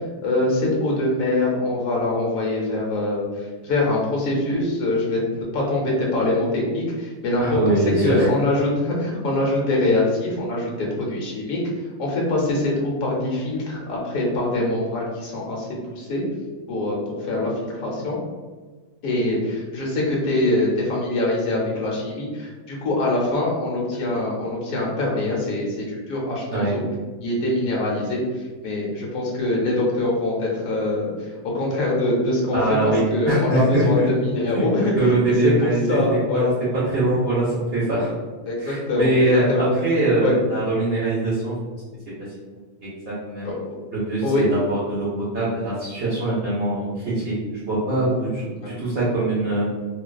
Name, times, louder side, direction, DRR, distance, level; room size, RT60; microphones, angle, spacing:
voice 1, 0.2-5.2 5.5-11.6 12.0-16.2 16.7-18.2 19.0-26.8 27.2-32.6 33.1-35.2 35.4-36.5 38.4-39.7 40.2-40.3 43.4-43.8 44.2-44.5 48.6-48.8, left 2 dB, 75° left, -3 dB, 1.2 m, -24 dB
voice 2, 7.4-8.3 26.5-26.8 32.5-34.1 34.5-34.6 35.0-36.0 36.3-36.5 36.9-38.1 38.6-39.5 39.8-41.5 43.1-43.5 43.9-45.1 45.3-49.7, right 2 dB, 55° right, -7 dB, 0.8 m, -22 dB
2.5 x 2.3 x 2.2 m, 1.4 s
omnidirectional pair, 1.4 m